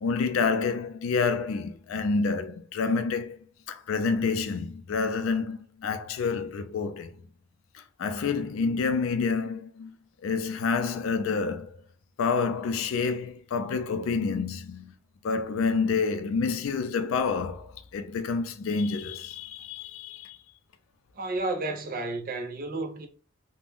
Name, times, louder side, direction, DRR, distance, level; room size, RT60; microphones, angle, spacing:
voice 1, 0.0-3.4 3.7-7.1 8.0-9.9 10.2-11.8 12.2-15.0 15.2-20.4, left 4 dB, 80° left, 0.4 m, -28 dB
voice 2, 21.1-23.1, right 2 dB, 45° right, 0.6 m, -31 dB
2.5 x 2.1 x 3.4 m
head